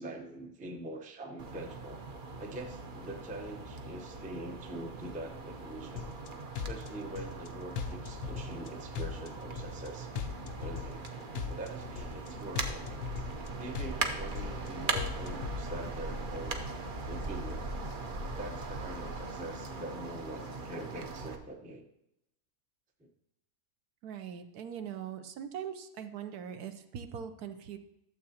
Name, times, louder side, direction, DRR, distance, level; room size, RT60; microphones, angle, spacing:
voice 1, 0.0-2.0 2.4-6.1 6.6-10.1 10.5-11.0 11.5-12.8 13.6-16.6 17.1-17.6 18.4-21.8 23.0-23.1, right 1 dB, 10° right, 3 dB, 0.5 m, -44 dB
sound 1, 1.4-21.4, right 3 dB, 45° right, 0.7 m, -40 dB
sound 2, 6.0-6.3 6.5-7.5 7.8-8.7 8.9-9.9 10.2-11.1 11.3-12.3 12.6-13.5 13.7-14.7 15.0-15.6, left 7 dB, 65° left, 0.9 m, -38 dB
voice 2, 24.0-27.8, right 8 dB, 75° right, 8 dB, 1.2 m, -41 dB
12.5 x 7.4 x 2.8 m, 0.83 s
omnidirectional pair, 1.7 m